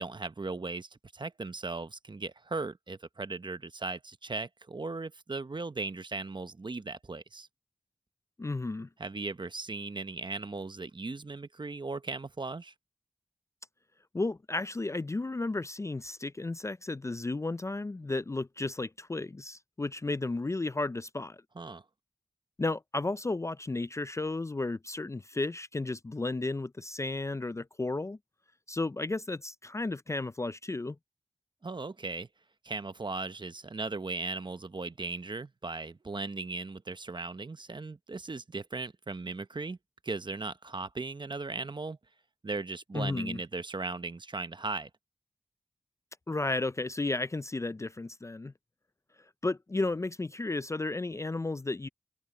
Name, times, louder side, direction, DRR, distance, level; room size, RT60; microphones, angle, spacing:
voice 1, 0.0-7.5 9.0-12.7 21.5-21.8 31.6-32.3 32.6-39.8 40.0-42.0 42.4-44.9, right 3 dB, 40° right, 0.9 m, -37 dB
voice 2, 8.4-8.9 14.1-21.4 22.6-28.2 28.7-31.0 42.9-43.4 46.3-48.5 49.4-51.9, left 2 dB, 25° left, 0.4 m, -33 dB
open air
cardioid pair, 50°, 12 cm